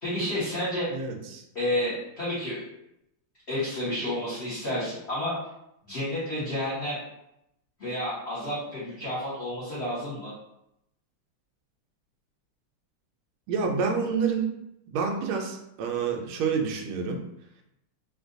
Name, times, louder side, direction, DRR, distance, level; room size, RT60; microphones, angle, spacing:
voice 1, 0.0-0.9 1.5-2.7 3.5-5.3 5.9-7.0 7.8-10.3, left 1 dB, 40° left, -12 dB, 1.2 m, -30 dB
voice 2, 0.9-1.4 13.5-14.5 14.9-17.2, right 5 dB, 85° right, 2 dB, 1.4 m, -28 dB
3.8 x 2.5 x 2.5 m, 0.82 s
omnidirectional pair, 2.3 m